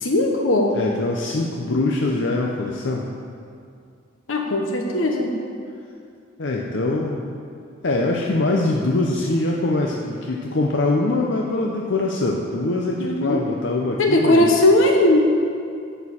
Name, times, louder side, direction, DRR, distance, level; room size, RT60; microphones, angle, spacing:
voice 1, 0.0-0.7 4.3-5.4 13.0-13.4 14.0-15.2, left 1 dB, 85° left, 2 dB, 1.2 m, -18 dB
voice 2, 0.7-3.1 6.4-7.2 7.8-14.5, left 2 dB, 65° left, -1 dB, 0.7 m, -23 dB
11.0 x 4.5 x 7.2 m, 2.3 s
head